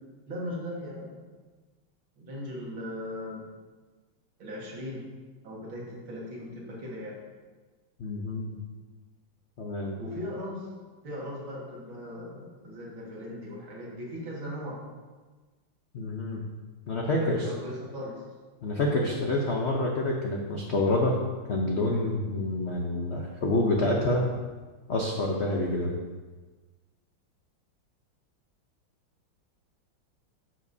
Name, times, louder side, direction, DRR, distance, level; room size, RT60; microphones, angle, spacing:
voice 1, 0.3-1.2 2.2-3.4 4.4-5.0 5.4-7.2 10.0-10.7 11.0-14.8 17.2-18.2, left 1 dB, 70° right, -4 dB, 2.6 m, -38 dB
voice 2, 8.0-8.6 9.6-10.0 15.9-16.5 16.9-17.5 18.6-21.2 21.5-24.2 24.9-25.9, left 2 dB, 80° left, 0 dB, 0.6 m, -27 dB
10.0 x 7.5 x 2.7 m, 1.3 s
omnidirectional pair, 2.3 m